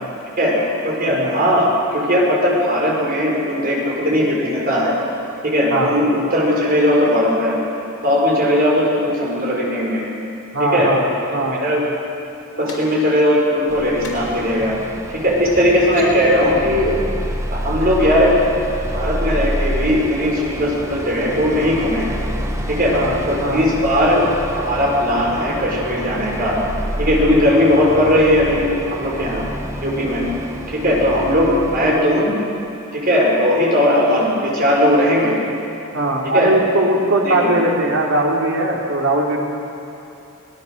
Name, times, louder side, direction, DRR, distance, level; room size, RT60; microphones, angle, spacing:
voice 1, 0.8-4.9 5.4-7.6 8.0-10.0 10.6-10.9 11.6-11.8 12.6-14.8 15.1-16.9 17.5-18.4 18.9-22.1 22.7-22.9 23.3-26.6 27.0-29.4 29.8-30.2 30.7-32.4 32.9-35.3 36.3-36.5 37.2-37.5, equal, 45° right, -3 dB, 5.2 m, -18 dB
voice 2, 10.5-11.6 22.9-23.7 35.9-39.4, right 1 dB, 75° right, -1 dB, 3.2 m, -20 dB
sound 1, 12.7-12.8 14.0-14.2 15.0-15.1 15.7-16.1 17.8-18.2, left 5 dB, 80° left, 4.7 m, -37 dB
sound 2, 13.7-32.0, equal, 15° right, 1.2 m, -28 dB
24.5 x 19.0 x 6.6 m, 2.7 s
head